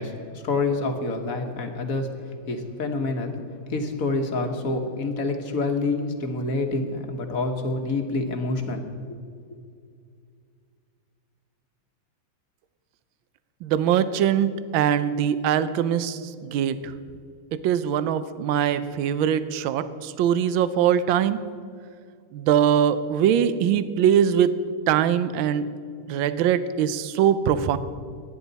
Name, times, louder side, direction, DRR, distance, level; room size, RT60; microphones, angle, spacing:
voice 1, 0.0-3.4 3.7-9.2, left 3 dB, 45° left, 4 dB, 1.5 m, -27 dB
voice 2, 13.6-16.9 17.6-21.4 22.3-24.5 24.9-25.7 26.1-27.8, right 9 dB, 70° right, 13 dB, 1.4 m, -22 dB
22.0 x 10.0 x 4.1 m, 2.2 s
omnidirectional pair, 2.4 m